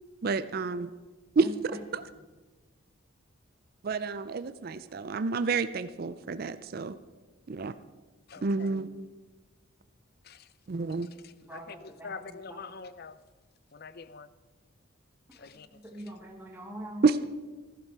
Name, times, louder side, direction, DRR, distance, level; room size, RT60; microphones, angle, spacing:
voice 1, 0.2-0.9 1.4-1.5 3.8-7.0 7.5-7.7 8.4-8.9 10.7-11.1 17.0-17.2, right 4 dB, 45° right, 0.4 m, -29 dB
voice 2, 1.4-2.1 4.9-5.0 8.3-8.9 11.4-12.6 15.3-17.1, right 1 dB, 10° right, 1.3 m, -44 dB
voice 3, 8.3-8.7 10.2-10.5 11.0-13.2 13.7-14.3 15.3-15.8, left 5 dB, 50° left, 0.6 m, -45 dB
14.0 x 11.5 x 4.6 m
head